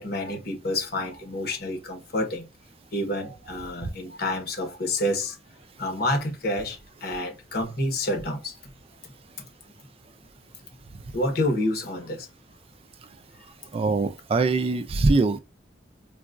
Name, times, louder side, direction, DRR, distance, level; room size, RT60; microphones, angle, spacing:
voice 1, 0.0-2.5 2.9-5.4 5.8-8.6 9.0-9.1 9.4-9.5 11.1-12.3, left 1 dB, 60° left, 1.1 m, -28 dB
voice 2, 13.7-15.4, right 3 dB, 35° right, 0.3 m, -22 dB
3.8 x 2.3 x 2.4 m
head